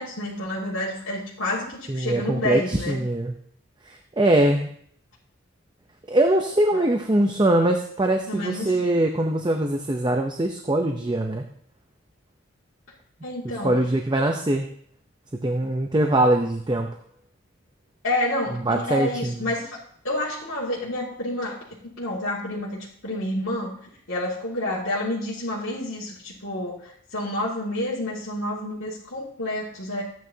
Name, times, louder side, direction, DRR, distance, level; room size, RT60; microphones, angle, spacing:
voice 1, 0.0-3.0 6.7-6.9 8.3-8.9 13.2-13.9 18.0-19.8 20.0-21.6 22.0-23.7 24.1-30.0, left 1 dB, 70° left, -9 dB, 2.2 m, -29 dB
voice 2, 1.9-3.3 4.2-4.7 6.1-11.4 13.6-14.7 15.4-16.9 18.7-19.5, right 1 dB, 20° right, 4 dB, 0.6 m, -22 dB
14.0 x 9.3 x 2.8 m, 0.63 s
head